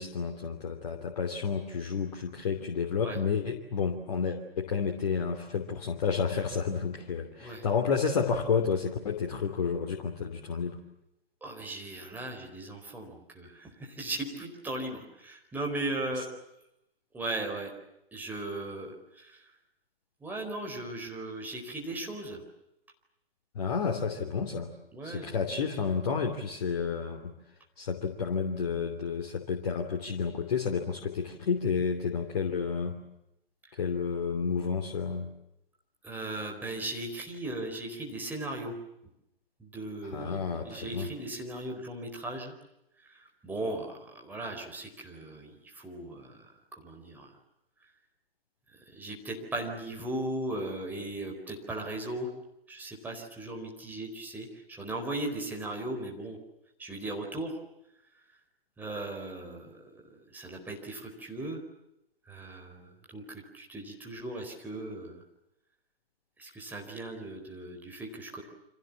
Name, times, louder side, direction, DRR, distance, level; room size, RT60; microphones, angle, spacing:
voice 1, 0.0-10.8 16.2-16.3 23.5-24.7 25.0-27.3 27.8-33.0 33.8-35.3 40.0-41.1, left 6 dB, 40° left, 2 dB, 3.0 m, -31 dB
voice 2, 11.4-16.3 17.1-17.7 18.1-19.4 20.2-22.4 24.9-25.3 36.0-38.7 39.6-40.4 40.6-42.5 43.1-46.5 46.7-47.3 48.9-52.3 52.7-56.4 56.8-57.6 58.8-59.8 60.3-61.6 62.3-65.2 66.4-68.4, right 2 dB, 5° right, 0 dB, 4.4 m, -37 dB
29.5 x 26.0 x 7.3 m, 0.86 s
figure-of-eight pair, 130°, 30 cm